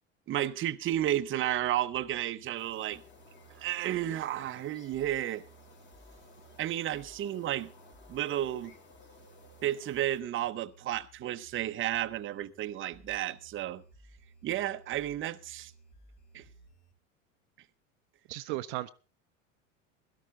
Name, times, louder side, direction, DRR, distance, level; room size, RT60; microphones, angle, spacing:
voice 1, 0.3-3.0 3.6-5.4 6.6-7.7 8.1-8.7 9.6-13.8 14.4-15.7 16.3-16.4, right 12 dB, 30° right, 0.8 m, -32 dB
sound 1, 0.9-16.9, right 3 dB, 45° left, 4.2 m, -59 dB
sound 2, 2.6-10.2, left 3 dB, 30° left, 3.5 m, -58 dB
voice 2, 18.3-18.9, right 17 dB, 60° right, 0.7 m, -35 dB
17.0 x 12.5 x 3.8 m
hypercardioid pair, 85°, 38 cm